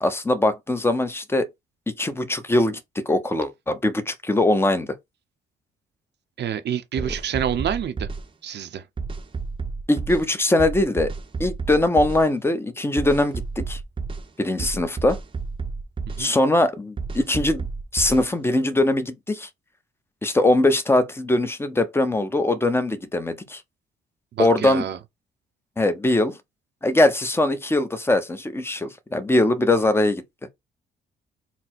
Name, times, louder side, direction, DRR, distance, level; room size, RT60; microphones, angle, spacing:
voice 1, 0.0-1.5 2.0-5.0 9.9-11.1 11.4-13.8 14.4-15.2 16.2-17.6 17.9-19.5 20.2-23.6 24.4-24.8 25.8-26.4 26.8-30.2, left 2 dB, 10° left, 0.8 m, -21 dB
voice 2, 6.4-8.1 8.4-8.8 16.1-16.3 24.3-25.0, right 9 dB, 60° right, 0.8 m, -28 dB
sound 1, 7.0-8.2 9.0-10.3 10.6-12.2 13.0-14.3 14.6-16.3 17.0-18.3, right 4 dB, 25° right, 0.8 m, -31 dB
4.1 x 2.2 x 4.3 m
cardioid pair, 90°, 20 cm